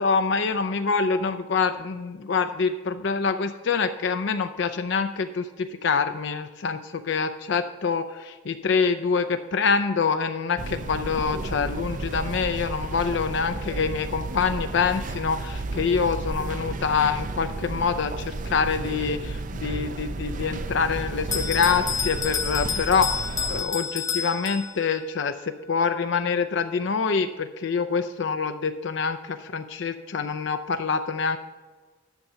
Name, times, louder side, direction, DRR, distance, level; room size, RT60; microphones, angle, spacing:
voice 1, 0.0-31.4, left 5 dB, 65° left, 8 dB, 0.5 m, -26 dB
sound 1, 10.6-23.6, right 3 dB, 40° right, 0.5 m, -33 dB
Bell, 21.3-25.0, left 6 dB, 15° left, 0.7 m, -29 dB
10.5 x 6.9 x 5.5 m, 1.3 s
head